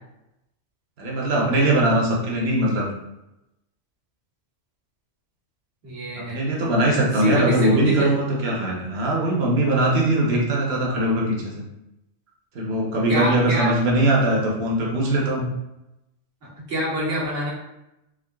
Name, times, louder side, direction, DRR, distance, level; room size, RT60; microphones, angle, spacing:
voice 1, 1.0-2.9 6.2-11.6 12.5-15.5, right 1 dB, 60° right, -2 dB, 1.1 m, -21 dB
voice 2, 5.8-6.4 7.1-8.1 13.1-13.7 16.4-17.5, equal, 90° right, -7 dB, 1.7 m, -26 dB
3.7 x 3.4 x 2.3 m, 0.90 s
omnidirectional pair, 1.2 m